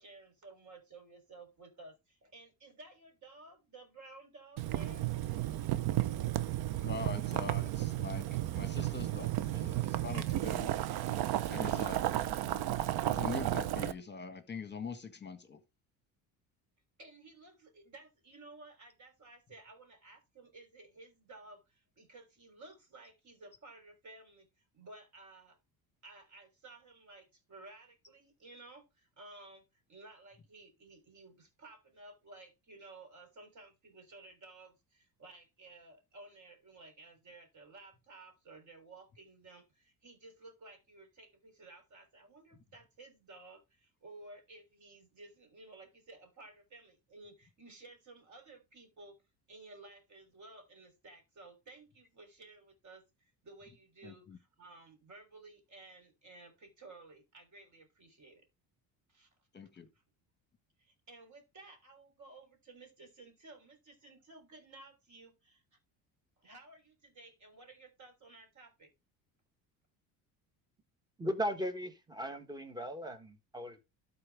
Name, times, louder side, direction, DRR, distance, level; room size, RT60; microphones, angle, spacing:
voice 1, 0.0-5.1 11.5-12.2 17.0-25.6 26.0-29.6 29.9-49.2 49.5-58.4 59.1-59.3 60.8-65.8 66.4-68.9, right 2 dB, 40° right, 3.8 m, -55 dB
Boiling, 4.6-13.9, right 14 dB, 60° right, 0.8 m, -33 dB
voice 2, 6.8-8.2 8.5-10.8 11.4-12.0 13.0-15.6 54.0-54.4 59.5-59.9, left 5 dB, 25° left, 1.6 m, -43 dB
voice 3, 71.2-73.8, equal, 10° right, 1.6 m, -37 dB
12.5 x 4.2 x 3.5 m
supercardioid pair, 85°, 42 cm